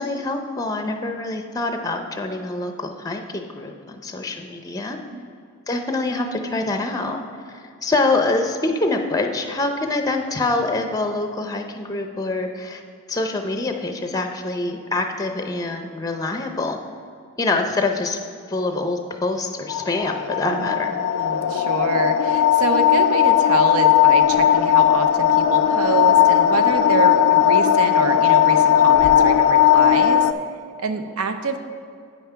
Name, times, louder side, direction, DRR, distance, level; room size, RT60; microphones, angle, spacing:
voice 1, 0.0-5.0 5.7-7.2 7.5-12.8 13.1-16.8 17.4-18.2 18.5-20.9, left 2 dB, 15° left, 5 dB, 0.5 m, -25 dB
sound 1, 19.7-30.3, left 10 dB, 90° left, 0.4 m, -17 dB
voice 2, 21.2-30.3 30.8-31.7, right 4 dB, 85° right, 8 dB, 0.6 m, -26 dB
8.5 x 5.8 x 5.6 m, 2.3 s
head